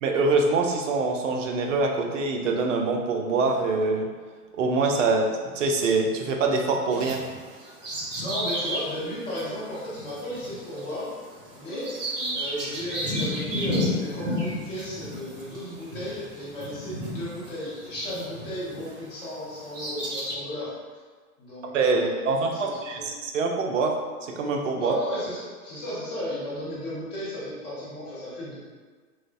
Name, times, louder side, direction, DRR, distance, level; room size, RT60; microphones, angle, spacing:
voice 1, 0.0-4.1 4.5-7.2 21.7-24.0 24.2-24.9, right 3 dB, 55° right, 2 dB, 0.5 m, -24 dB
Bird vocalization bird call bird song, 6.9-19.0 19.5-20.3, equal, 40° right, 1.4 m, -32 dB
voice 2, 8.2-11.2 11.5-20.7 21.4-23.0 24.7-28.6, equal, 15° left, -9 dB, 0.4 m, -34 dB
3.1 x 2.0 x 2.5 m, 1.5 s
figure-of-eight pair, 115°, 46 cm